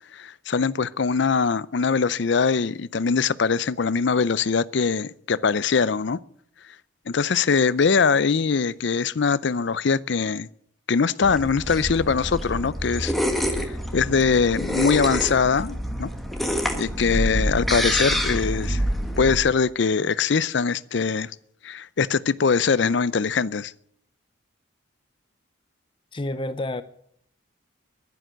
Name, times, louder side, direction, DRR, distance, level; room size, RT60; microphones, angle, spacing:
voice 1, 0.1-6.2 7.1-10.5 10.9-13.1 13.6-13.7 13.9-16.1 16.7-18.8 19.2-21.3 21.6-23.7, left 5 dB, 60° left, 0.5 m, -22 dB
sound 1, 11.2-19.4, equal, ahead, 1.4 m, -27 dB
voice 2, 26.1-26.8, left 1 dB, 25° left, 0.6 m, -29 dB
11.5 x 11.0 x 9.1 m
head